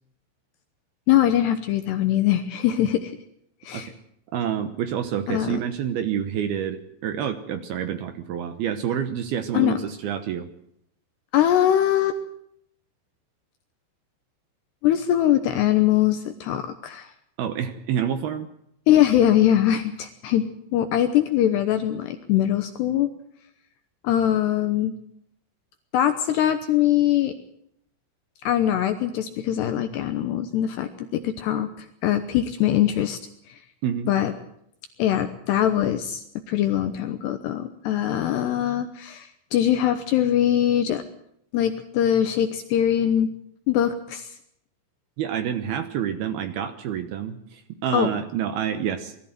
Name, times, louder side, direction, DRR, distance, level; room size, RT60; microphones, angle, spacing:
voice 1, 1.1-3.1 3.6-3.9 5.3-5.6 9.5-9.8 11.3-12.2 14.8-17.1 18.9-20.5 20.7-23.1 24.0-24.9 25.9-27.3 28.4-31.7 32.0-33.2 33.5-33.6 34.1-34.3 35.0-41.0 41.5-43.3 43.7-44.3 47.9-48.1, left 11 dB, 75° left, 8 dB, 2.6 m, -22 dB
voice 2, 4.3-10.5 17.4-18.5 33.8-34.1 45.2-49.1, right 9 dB, 75° right, 8 dB, 2.3 m, -28 dB
21.5 x 14.0 x 9.2 m, 0.73 s
omnidirectional pair, 5.9 m